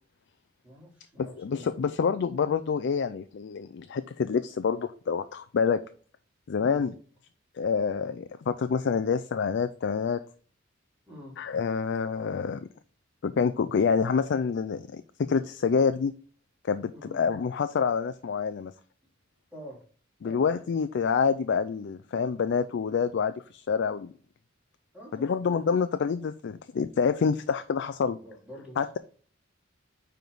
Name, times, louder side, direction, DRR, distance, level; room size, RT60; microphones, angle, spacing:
voice 1, 0.6-1.6 6.6-6.8 11.1-11.4 16.9-17.2 19.5-19.8 20.2-20.4 24.9-25.5 28.2-29.0, left 1 dB, 5° right, -5 dB, 3.1 m, -46 dB
voice 2, 1.2-5.8 6.5-6.9 7.6-10.2 11.4-12.7 13.2-16.1 16.7-18.7 20.2-24.1 25.1-28.2 28.8-29.0, left 6 dB, 60° left, 11 dB, 0.4 m, -27 dB
9.3 x 3.5 x 3.8 m, 0.43 s
head